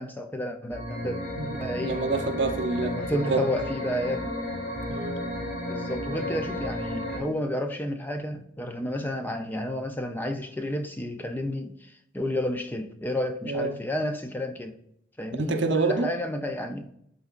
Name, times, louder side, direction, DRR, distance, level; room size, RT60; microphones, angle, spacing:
voice 1, 0.0-1.2 1.6-2.0 2.8-4.3 5.7-14.7 15.2-16.9, left 1 dB, 10° left, 0.4 m, -31 dB
sound 1, 0.7-7.2, left 1 dB, 50° left, 2.5 m, -33 dB
voice 2, 1.4-3.0 3.3-3.4 4.9-5.2 13.4-13.8 15.4-16.1, right 3 dB, 55° right, 0.7 m, -27 dB
11.5 x 3.9 x 2.5 m
head